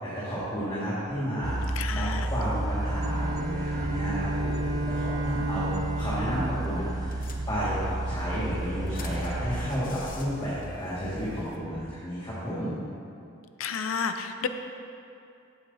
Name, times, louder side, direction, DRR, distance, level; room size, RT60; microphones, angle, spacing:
voice 1, 0.0-5.7 6.0-12.7, equal, 20° left, -11 dB, 1.9 m, -32 dB
sound 1, 1.4-9.7, right 2 dB, 20° right, 0.4 m, -32 dB
voice 2, 1.8-2.3 13.6-14.5, left 6 dB, 80° left, 8 dB, 0.6 m, -31 dB
Bowed string instrument, 2.8-7.6, right 1 dB, 80° right, 0.8 m, -33 dB
sound 2, 6.1-6.4 6.6-6.7 7.1-7.9 8.4-11.6, left 2 dB, 45° left, 0.8 m, -44 dB
15.0 x 7.9 x 2.8 m, 2.6 s
head